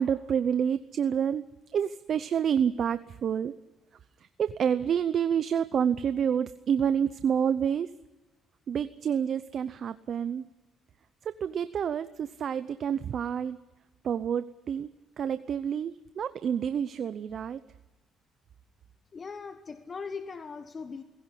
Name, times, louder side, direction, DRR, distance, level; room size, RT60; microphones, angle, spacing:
voice 1, 0.0-1.4 1.7-3.5 4.4-7.9 8.7-10.4 11.4-13.6 14.0-14.9 15.2-17.6, right 8 dB, 55° right, 13 dB, 0.7 m, -28 dB
voice 2, 19.1-21.0, left 5 dB, 35° left, 8 dB, 1.2 m, -39 dB
19.5 x 17.0 x 10.0 m, 1.1 s
cardioid pair, 110°, 0 cm